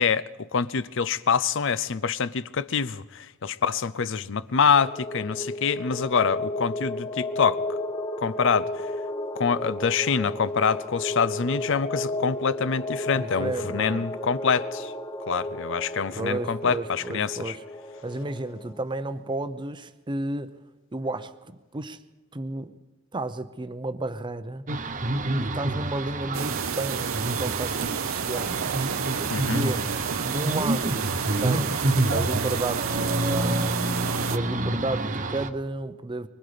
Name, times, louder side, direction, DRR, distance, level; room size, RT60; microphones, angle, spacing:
voice 1, 0.0-7.6 8.2-8.9 9.4-14.9 15.3-17.6 29.3-29.6, left 6 dB, 65° left, 0.6 m, -25 dB
sound 1, 4.5-18.9, left 1 dB, 25° left, 1.2 m, -33 dB
voice 2, 13.1-14.0 16.2-17.6 18.0-20.6 20.9-22.0 22.3-22.7 23.1-24.7 25.4-28.6 29.5-31.1 31.4-33.7 34.3-36.3, right 2 dB, 25° right, 0.7 m, -32 dB
sound 2, 24.7-35.5, right 2 dB, 40° right, 1.0 m, -28 dB
sound 3, 26.3-34.4, right 7 dB, 80° right, 0.8 m, -30 dB
24.0 x 23.5 x 5.1 m
head